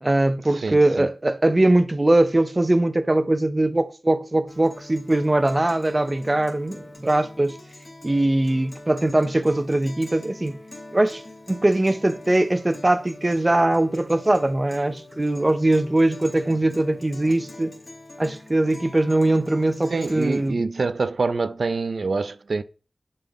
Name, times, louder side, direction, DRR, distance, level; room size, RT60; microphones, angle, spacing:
voice 1, 0.0-7.6 8.0-10.6 10.9-11.2 11.5-17.8 18.2-20.7, right 1 dB, 30° right, 0.6 m, -21 dB
voice 2, 0.5-1.1 19.9-22.6, right 4 dB, 75° right, 0.5 m, -26 dB
Guitar, 4.5-20.5, left 2 dB, 45° left, 2.9 m, -44 dB
10.5 x 3.7 x 3.6 m
wide cardioid pair, 80°, 0 cm